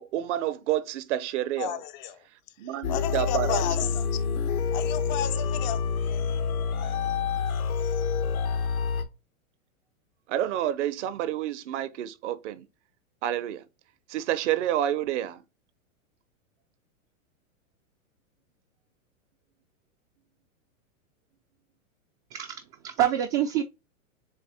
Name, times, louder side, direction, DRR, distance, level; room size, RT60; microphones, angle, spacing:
voice 1, 0.0-1.8 2.6-3.6 10.3-12.7 13.2-13.6 14.1-15.4, right 12 dB, 55° right, 0.8 m, -29 dB
voice 2, 1.6-2.2 2.9-4.1 4.7-7.3 7.8-8.2, left 11 dB, 35° left, 0.4 m, -34 dB
sound 1, 2.8-9.0, left 6 dB, 85° left, 1.2 m, -27 dB
voice 3, 22.3-23.6, right 11 dB, 30° right, 0.4 m, -26 dB
7.3 x 2.5 x 2.8 m
hypercardioid pair, 120°, 41 cm